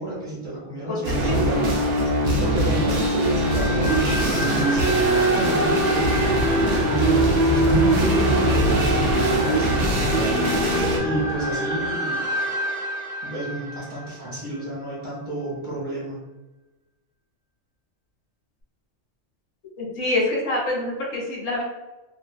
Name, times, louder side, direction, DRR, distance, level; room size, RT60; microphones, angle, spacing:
voice 1, 0.0-1.8 2.4-4.9 5.3-6.4 6.8-10.7 11.0-12.2 13.2-16.2, right 1 dB, 25° right, -8 dB, 0.9 m, -30 dB
voice 2, 0.9-1.4 2.7-2.8 19.8-21.6, left 2 dB, 80° left, -3 dB, 1.1 m, -26 dB
sound 1, 1.0-11.0, right 1 dB, 85° right, 1.0 m, -21 dB
sound 2, 3.4-14.6, left 1 dB, 55° left, 0.8 m, -27 dB
2.6 x 2.5 x 2.2 m, 1.1 s
omnidirectional pair, 1.2 m